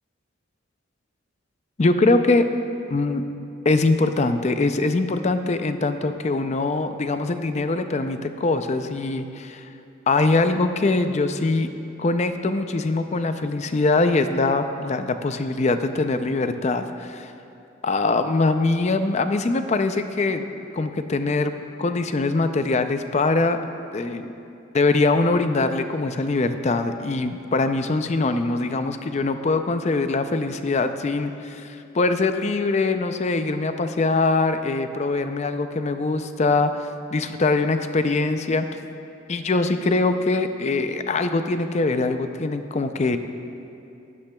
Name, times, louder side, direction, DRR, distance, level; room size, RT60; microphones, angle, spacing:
voice 1, 1.8-2.5 2.9-3.2 3.6-9.7 10.1-11.7 12.0-17.3 17.8-20.5 20.7-23.6 23.9-24.3 24.7-38.7 39.3-43.2, left 3 dB, 35° left, 9 dB, 0.4 m, -22 dB
16.0 x 11.5 x 2.3 m, 2.7 s
head